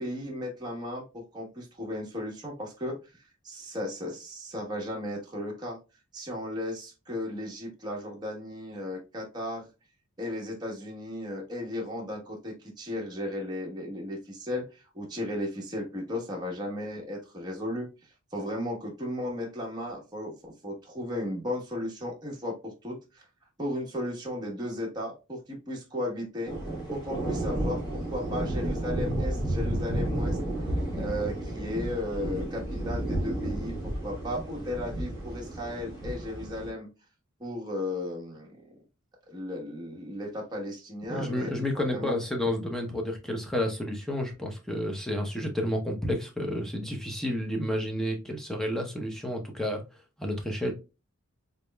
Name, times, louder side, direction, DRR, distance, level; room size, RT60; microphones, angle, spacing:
voice 1, 0.0-3.0 3.4-5.8 6.1-9.7 10.2-17.9 18.3-23.2 23.6-26.5 26.9-30.4 30.9-36.9 37.4-38.6 39.3-41.6 41.9-42.2, left 1 dB, 20° right, -2 dB, 1.1 m, -35 dB
sound 1, 26.5-36.7, right 1 dB, 20° left, 1.4 m, -32 dB
voice 2, 41.1-49.8 50.2-50.7, left 1 dB, ahead, 1 dB, 0.7 m, -30 dB
4.0 x 3.4 x 2.2 m, 0.28 s
head